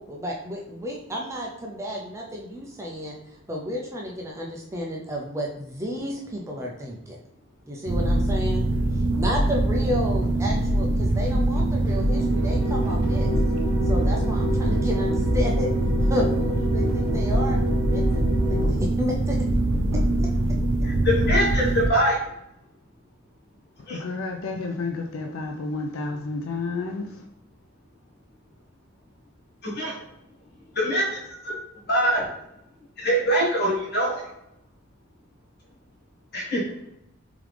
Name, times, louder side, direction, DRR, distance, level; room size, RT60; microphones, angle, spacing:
voice 1, 0.0-3.1 3.5-7.2 7.7-8.6 9.2-13.3 13.9-15.7 16.1-17.6 17.8-18.0 18.5-19.4, left 1 dB, 15° right, 0.4 m, -31 dB
sound 1, 7.9-21.9, right 1 dB, 75° right, 0.5 m, -23 dB
sound 2, 9.7-10.7 11.3-18.7, left 1 dB, 15° left, 1.1 m, -32 dB
voice 2, 20.8-22.2 23.9-24.0 29.6-30.0 30.7-31.6 31.9-32.3 33.0-34.2 36.3-36.6, equal, 50° left, 1.3 m, -23 dB
voice 3, 23.8-27.3, left 3 dB, 70° left, 0.4 m, -31 dB
3.6 x 3.4 x 3.2 m
head